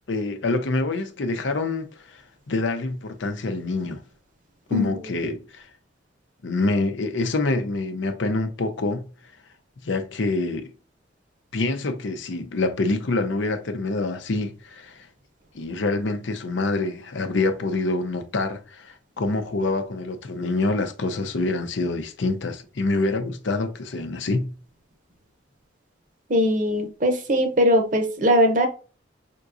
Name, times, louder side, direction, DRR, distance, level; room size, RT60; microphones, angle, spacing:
voice 1, 0.1-2.2 2.5-4.0 4.7-5.7 6.4-9.1 9.8-10.7 11.5-15.1 15.5-24.5, left 2 dB, 80° left, 0.6 m, -26 dB
voice 2, 26.3-28.7, equal, 45° right, 0.8 m, -20 dB
4.8 x 3.7 x 2.5 m
head